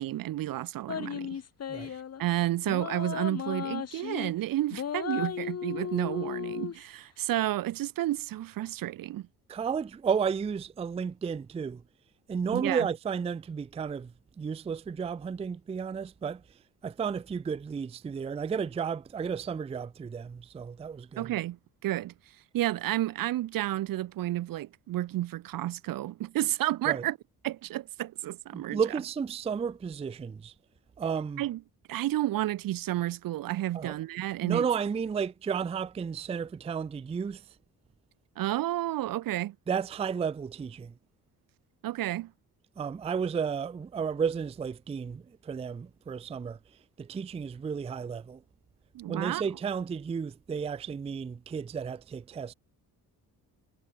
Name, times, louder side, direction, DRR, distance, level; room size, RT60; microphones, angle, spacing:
voice 1, 0.0-1.4 1.9-9.3 12.5-12.9 21.2-21.6 21.8-22.1 22.5-27.2 27.4-28.8 31.4-31.6 31.9-34.7 38.4-39.5 41.8-42.3 48.9-49.4, right 14 dB, 65° right, 0.7 m, -31 dB
sound 1, 0.9-2.2 2.7-4.3 4.7-6.8, left 8 dB, 40° left, 1.9 m, -35 dB
voice 2, 9.5-11.8 12.3-14.1 14.4-16.4 16.8-21.3 26.9-27.0 28.5-30.5 31.0-31.4 33.7-34.0 34.4-37.4 39.7-40.9 42.8-46.6 47.0-48.4 49.1-52.5, right 6 dB, 15° right, 0.4 m, -32 dB
cardioid pair, 140°, 38 cm